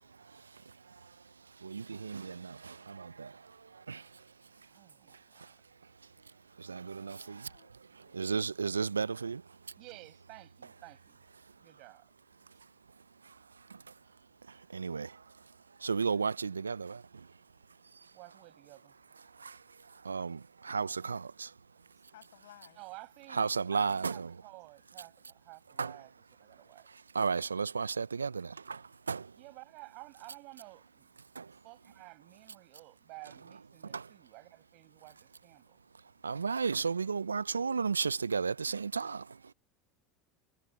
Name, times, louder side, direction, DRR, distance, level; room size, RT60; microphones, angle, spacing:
voice 1, 0.2-1.1 1.6-4.2 5.4-5.5 6.6-7.5 7.9-9.4 13.2-13.3 13.7-13.8 14.5-15.2 15.8-17.3 19.4-21.5 23.3-24.4 25.8-26.0 26.9-29.3 31.4-31.6 33.9-34.1 36.2-39.4, right 5 dB, 90° right, 0.4 m, -34 dB
voice 2, 4.7-5.5 9.8-11.2 11.6-12.1 18.1-18.9 22.8-26.1 26.4-26.9 29.4-31.1 31.6-35.8, right 26 dB, 55° right, 6.3 m, -53 dB
voice 3, 7.0-7.7 8.0-8.2 22.1-22.8, left 14 dB, 70° left, 7.8 m, -58 dB
hypercardioid pair, 80°, 0 cm